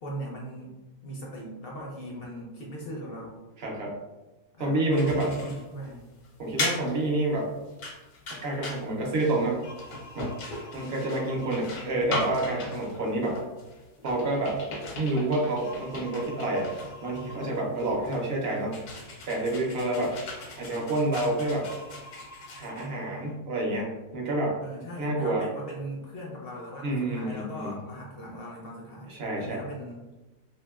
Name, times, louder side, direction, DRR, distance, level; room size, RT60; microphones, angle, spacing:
voice 1, 0.0-0.7 1.0-3.4 4.6-6.0 24.6-30.0, right 1 dB, 65° left, -2 dB, 0.6 m, -39 dB
voice 2, 3.6-4.0 4.6-5.3 6.4-7.5 8.3-9.6 10.2-10.3 10.7-13.4 14.0-14.6 15.0-16.7 17.0-18.8 19.3-20.2 20.6-21.7 22.6-24.6 25.0-25.5 26.8-27.7 29.1-29.6, right 2 dB, 55° right, -1 dB, 0.7 m, -28 dB
sound 1, 4.9-23.3, left 2 dB, 85° left, 1.2 m, -38 dB
2.8 x 2.7 x 2.3 m, 1.1 s
omnidirectional pair, 1.5 m